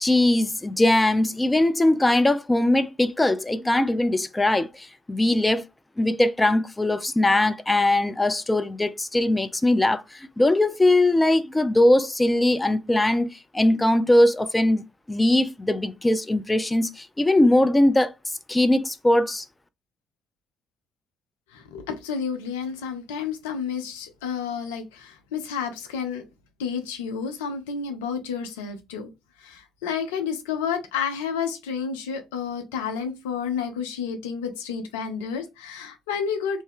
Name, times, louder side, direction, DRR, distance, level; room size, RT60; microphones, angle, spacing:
voice 1, 0.0-5.6 6.0-14.8 15.1-18.1 18.5-19.4, left 1 dB, 15° left, 0.4 m, -21 dB
voice 2, 21.5-26.2 26.6-29.1 29.4-36.6, left 6 dB, 75° left, 0.5 m, -30 dB
2.6 x 2.2 x 3.4 m
figure-of-eight pair, 45°, 0 cm